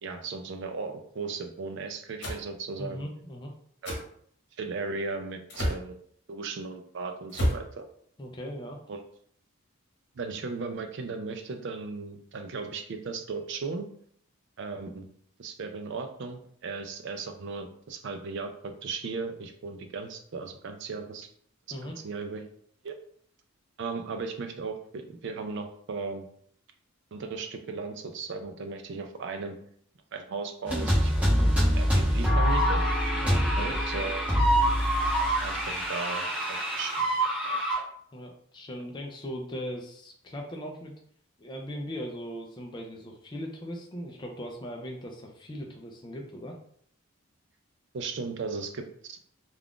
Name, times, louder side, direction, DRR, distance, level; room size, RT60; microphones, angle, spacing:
voice 1, 0.0-3.0 3.8-4.0 4.6-5.9 6.3-7.8 8.9-9.0 10.2-13.9 14.6-15.1 15.4-21.3 21.8-22.4 22.8-22.9 23.8-26.2 27.1-29.6 30.1-31.3 31.6-32.8 33.6-34.2 35.4-37.1 37.4-37.6 47.9-49.2, right 4 dB, 55° right, 6 dB, 0.4 m, -36 dB
sound 1, 2.2-2.4 3.8-4.0 5.5-5.9 7.3-7.7, equal, 55° left, 1.0 m, -29 dB
voice 2, 2.8-3.5 8.2-8.8 21.7-22.0 33.1-34.1 38.1-40.9 41.4-46.6, equal, 20° left, 1 dB, 0.4 m, -39 dB
sound 2, 30.6-37.8, equal, 5° right, 0.7 m, -25 dB
2.4 x 2.3 x 3.5 m, 0.62 s
head